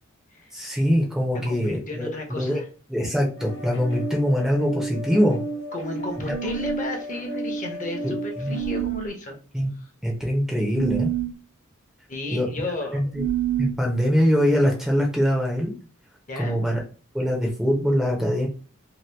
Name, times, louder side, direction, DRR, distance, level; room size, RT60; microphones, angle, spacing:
voice 1, 0.5-2.6 2.9-5.4 6.3-6.5 8.0-8.1 8.4-8.5 9.5-9.7 10.0-11.1 12.3-12.5 12.9-13.2 13.6-15.7 16.4-16.8 17.1-18.5, equal, ahead, -1 dB, 0.7 m, -23 dB
voice 2, 1.3-2.7 5.7-9.4 9.8-9.9 10.2-10.3 12.1-13.0 16.3-16.6, left 2 dB, 40° left, 2 dB, 0.8 m, -33 dB
sound 1, 3.4-8.8, right 1 dB, 65° left, 1.0 m, -33 dB
sound 2, 6.3-6.9 8.5-9.1 10.7-11.4 13.1-13.8, right 13 dB, 80° right, 0.5 m, -28 dB
2.8 x 2.3 x 3.3 m, 0.37 s
head